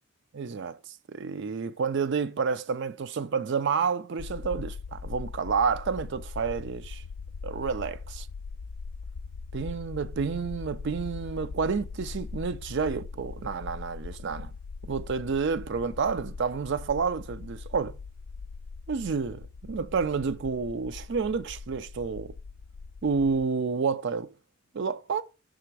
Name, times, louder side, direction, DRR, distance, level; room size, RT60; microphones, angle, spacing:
voice 1, 0.3-0.8 1.1-7.0 7.4-8.3 9.5-14.5 14.9-18.0 18.9-22.3 23.0-24.3 24.7-25.2, right 5 dB, 55° right, 0.4 m, -29 dB
sound 1, 4.2-23.4, left 4 dB, 65° left, 0.3 m, -41 dB
5.9 x 3.6 x 4.6 m
head